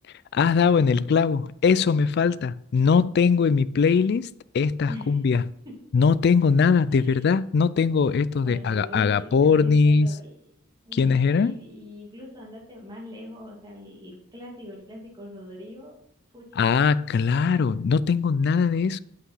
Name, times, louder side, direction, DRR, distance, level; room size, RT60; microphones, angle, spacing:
voice 1, 0.3-4.3 4.5-5.4 5.9-10.1 10.9-11.5 16.6-19.0, left 5 dB, 50° left, 0.3 m, -21 dB
voice 2, 4.9-5.2 5.6-5.8 6.9-7.3 8.4-16.0 16.3-16.7, left 1 dB, 20° right, 2.2 m, -42 dB
8.7 x 5.8 x 5.6 m
head